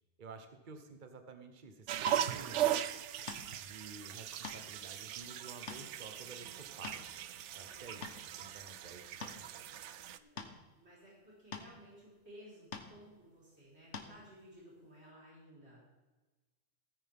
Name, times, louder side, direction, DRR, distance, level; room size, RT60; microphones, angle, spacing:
voice 1, 0.2-2.8 3.5-7.1 7.5-8.1 8.4-9.6, right 4 dB, 45° right, 6 dB, 1.2 m, -52 dB
sound 1, 1.9-10.2, right 11 dB, 80° right, 0.9 m, -38 dB
sound 2, 2.1-2.2 3.3-3.6 4.2-4.6 5.1-5.2 5.7-5.9 6.6-7.2 7.7-8.2 9.2-9.4 10.4-10.6 11.5-11.7 12.7-12.9 13.9-14.1, left 5 dB, 75° left, 1.5 m, -44 dB
voice 2, 7.7-8.0 10.1-15.8, equal, 65° right, -7 dB, 4.9 m, -57 dB
17.5 x 9.8 x 3.6 m, 1.2 s
omnidirectional pair, 1.2 m